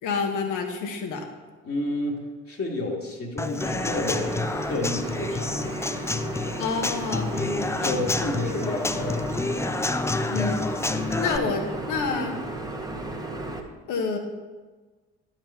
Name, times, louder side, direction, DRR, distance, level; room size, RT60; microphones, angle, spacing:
voice 1, 0.0-1.2 6.6-7.3 10.3-10.7 11.2-12.4 13.9-14.2, left 4 dB, 60° left, 3 dB, 1.4 m, -28 dB
voice 2, 1.6-5.7 7.3-9.4, left 2 dB, 40° left, -2 dB, 1.8 m, -31 dB
Human voice / Acoustic guitar / Drum, 3.4-11.4, left 3 dB, 10° left, 0.4 m, -29 dB
sound 1, 3.6-13.6, right 2 dB, 10° right, 1.2 m, -34 dB
10.0 x 4.7 x 5.5 m, 1.3 s
hypercardioid pair, 50°, 34 cm